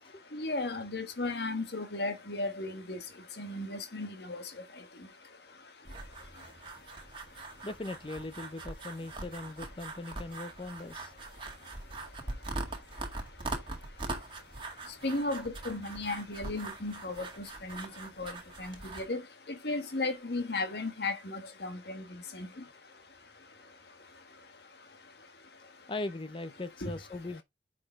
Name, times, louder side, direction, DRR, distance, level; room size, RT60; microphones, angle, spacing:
voice 1, 0.3-3.0 3.4-4.4 15.0-17.2 17.6-17.9 18.2-19.2 19.6-22.0 22.3-22.5 26.8-26.9, left 2 dB, 60° left, 1.5 m, -35 dB
sound 1, 5.8-19.0, right 2 dB, 30° right, 2.0 m, -42 dB
voice 2, 7.6-11.1 22.5-22.6 25.9-27.4, left 2 dB, 30° left, 0.5 m, -40 dB
9.9 x 4.9 x 3.5 m
head